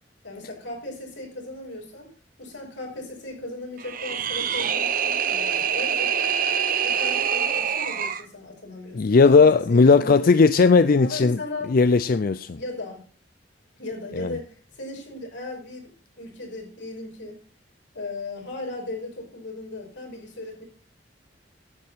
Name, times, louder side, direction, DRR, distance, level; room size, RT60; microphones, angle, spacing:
voice 1, 0.2-2.1 2.4-6.2 6.8-10.4 10.7-11.8 12.6-13.1 13.8-17.4 17.9-20.7, left 2 dB, 85° left, 5.7 m, -37 dB
sound 1, 3.8-8.3, right 8 dB, 50° right, 1.0 m, -25 dB
voice 2, 8.9-11.4 11.7-12.6 14.1-14.4, left 4 dB, 50° left, 0.5 m, -17 dB
11.0 x 8.5 x 5.6 m
head